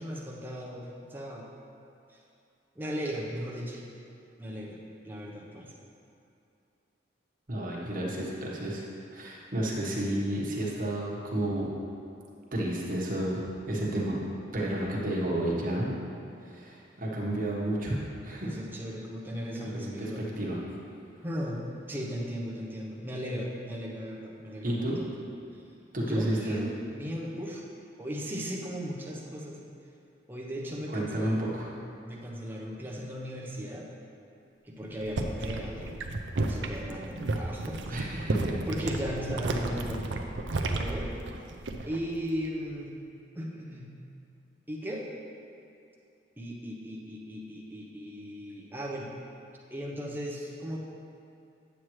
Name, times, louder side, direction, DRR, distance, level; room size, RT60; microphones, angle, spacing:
voice 1, 0.0-1.5 2.1-2.2 2.7-3.8 4.4-5.7 18.4-20.3 21.2-25.1 25.5-25.6 26.0-27.6 28.0-29.6 30.3-33.9 34.6-36.0 36.5-38.1 38.7-40.2 40.7-41.2 41.9-43.0 43.3-43.9 44.7-45.0 46.4-49.1 49.7-50.8, equal, 10° right, -3 dB, 0.9 m, -37 dB
voice 2, 7.5-8.8 9.1-11.7 12.5-14.2 14.5-15.9 16.4-17.9 18.2-18.6 19.5-20.6 24.6-25.0 25.9-26.7 30.9-31.7 37.9-38.5, right 1 dB, 50° right, -4 dB, 1.3 m, -31 dB
sound 1, 34.9-42.0 42.3-42.7, right 2 dB, 75° right, 0.6 m, -32 dB
9.0 x 7.5 x 3.2 m, 2.6 s
head